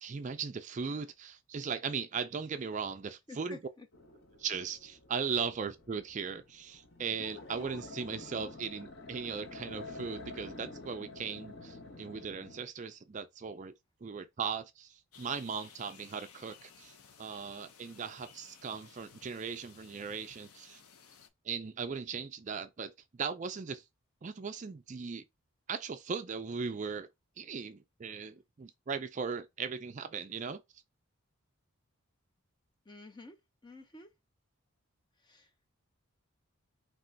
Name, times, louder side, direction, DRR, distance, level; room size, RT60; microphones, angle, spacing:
voice 1, 0.0-3.6 4.4-13.7 14.0-20.8 21.4-23.8 24.2-25.2 25.7-27.1 27.4-30.6, right 5 dB, 35° right, 0.3 m, -38 dB
voice 2, 3.3-3.9 32.9-33.4 33.6-34.1 35.2-35.5, left 2 dB, 20° left, 0.6 m, -50 dB
sound 1, 3.9-12.6, left 2 dB, 50° left, 0.9 m, -49 dB
sound 2, 15.1-21.3, left 6 dB, 85° left, 0.8 m, -57 dB
5.4 x 2.9 x 2.7 m
head